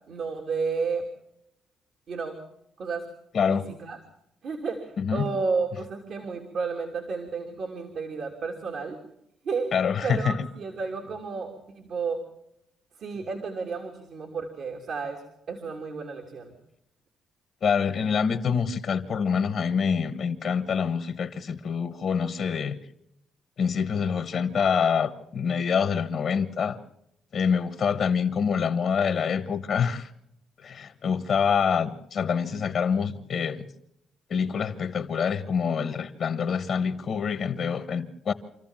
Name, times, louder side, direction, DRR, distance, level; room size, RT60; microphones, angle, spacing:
voice 1, 0.1-1.0 2.1-2.4 2.8-3.1 3.5-4.0 4.4-9.0 9.4-9.7 10.0-12.2 13.0-16.5, right 4 dB, 65° right, 3.2 m, -32 dB
voice 2, 3.3-3.6 5.0-5.3 9.7-10.4 17.6-22.8 23.6-26.8 27.3-30.1 30.6-33.7 34.3-38.3, left 6 dB, 60° left, 1.4 m, -26 dB
27.0 x 14.0 x 7.5 m
cardioid pair, 90°, 0 cm